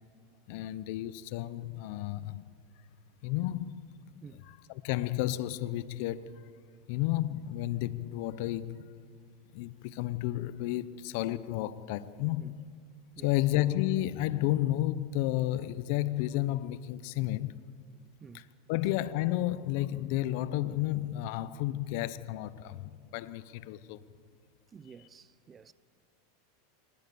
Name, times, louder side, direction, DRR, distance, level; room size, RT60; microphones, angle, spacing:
voice 1, 0.5-2.4 3.2-3.8 4.8-6.4 6.9-8.9 9.5-12.5 13.2-17.7 18.7-24.0, left 15 dB, 60° left, 0.8 m, -32 dB
voice 2, 24.7-25.7, right 6 dB, 20° right, 0.7 m, -51 dB
25.0 x 20.0 x 7.0 m
supercardioid pair, 130°, 0 cm